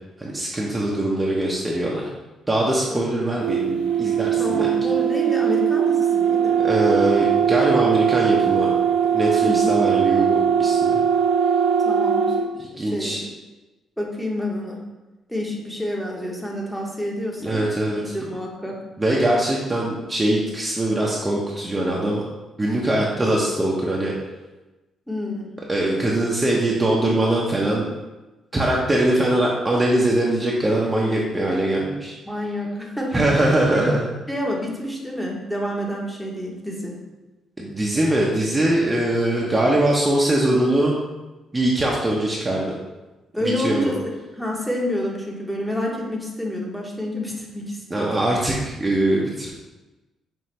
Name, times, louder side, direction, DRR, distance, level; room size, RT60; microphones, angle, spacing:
voice 1, 0.2-2.1 2.5-4.7 6.6-8.7 9.1-11.0 12.7-13.2 17.4-18.0 19.0-22.2 22.6-24.1 25.7-27.9 28.5-32.1 33.1-34.1 37.6-41.0 41.5-42.7 43.4-43.9 47.9-49.5, right 1 dB, 20° right, -4 dB, 0.6 m, -22 dB
sound 1, 3.4-12.5, right 8 dB, 80° right, 0.4 m, -20 dB
voice 2, 4.4-6.6 9.4-9.8 11.8-12.5 12.8-13.3 14.0-14.8 15.3-17.6 17.9-18.8 25.1-25.5 32.2-33.2 33.7-33.9 34.3-37.0 43.3-44.0 44.4-48.2, left 1 dB, 5° left, -1 dB, 0.9 m, -28 dB
5.6 x 2.5 x 3.1 m, 1.1 s
cardioid pair, 90°, 0 cm